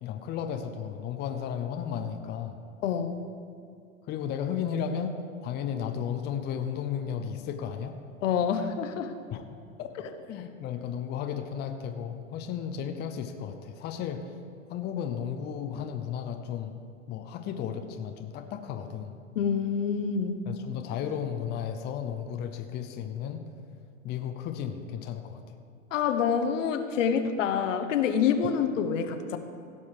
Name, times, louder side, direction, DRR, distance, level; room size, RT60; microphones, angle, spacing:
voice 1, 0.0-2.6 4.1-8.0 9.3-9.9 10.3-14.3 14.7-16.8 17.1-19.2 20.5-23.4 24.0-25.5, left 8 dB, 25° left, 6 dB, 0.7 m, -34 dB
voice 2, 2.8-3.2 8.2-9.1 19.3-20.4 25.9-29.4, left 7 dB, 65° left, 8 dB, 1.0 m, -27 dB
16.5 x 5.6 x 4.9 m, 2.5 s
hypercardioid pair, 110°, 41 cm